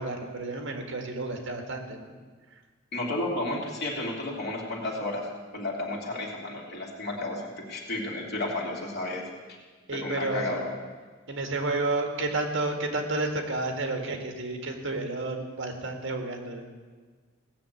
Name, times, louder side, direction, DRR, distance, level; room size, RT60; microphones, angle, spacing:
voice 1, 0.0-2.1 9.9-10.6 11.3-16.7, right 2 dB, 65° right, 4 dB, 1.7 m, -31 dB
voice 2, 2.9-5.3 5.5-9.3 9.9-10.6, left 2 dB, 55° left, -2 dB, 3.0 m, -32 dB
17.0 x 6.8 x 8.3 m, 1.5 s
head